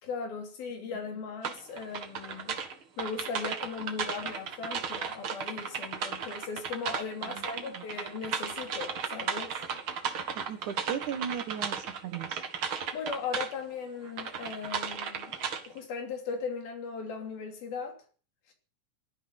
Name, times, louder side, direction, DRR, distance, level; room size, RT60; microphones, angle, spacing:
voice 1, 0.0-2.6 3.0-9.6 12.9-15.4 15.7-18.0 18.5-18.6, left 5 dB, 75° left, 5.0 m, -38 dB
sound 1, 1.4-13.5 14.1-15.8, right 6 dB, 45° right, 2.0 m, -35 dB
voice 2, 7.3-7.8 10.3-12.4, right 8 dB, 65° right, 2.5 m, -37 dB
17.5 x 13.0 x 5.9 m
omnidirectional pair, 4.2 m